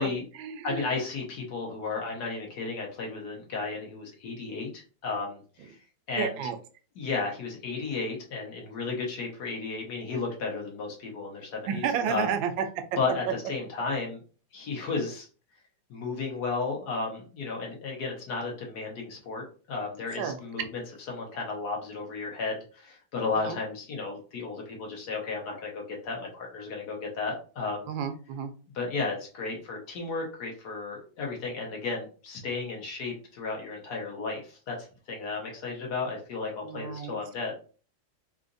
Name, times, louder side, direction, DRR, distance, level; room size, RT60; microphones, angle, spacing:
voice 1, 0.0-0.9 6.2-6.6 11.7-12.6 20.2-20.4 23.4-23.6 27.9-28.5 36.6-37.1, right 7 dB, 85° right, 8 dB, 1.3 m, -31 dB
voice 2, 0.6-5.8 6.1-6.4 7.0-12.2 13.0-14.2 14.5-15.3 15.9-20.8 21.1-27.9 28.7-37.5, left 4 dB, 65° left, 0 dB, 1.3 m, -33 dB
3.8 x 2.4 x 2.5 m, 0.38 s
omnidirectional pair, 2.1 m